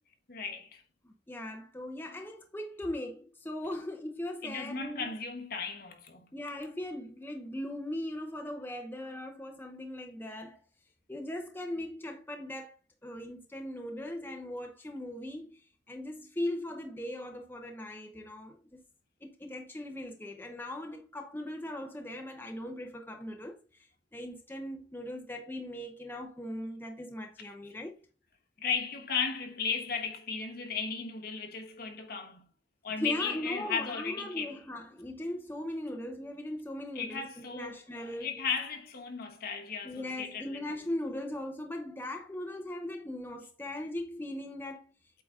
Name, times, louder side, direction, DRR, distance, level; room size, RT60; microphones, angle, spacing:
voice 1, 0.3-0.8 4.4-6.3 28.6-32.5 32.8-34.6 36.9-40.7, left 6 dB, 55° left, 1.2 m, -35 dB
voice 2, 1.0-5.1 6.3-10.6 11.1-12.8 13.0-15.6 15.9-18.8 19.2-23.6 24.1-28.0 33.0-38.4 39.8-44.9, left 1 dB, 10° left, 0.8 m, -39 dB
8.2 x 3.9 x 3.6 m
head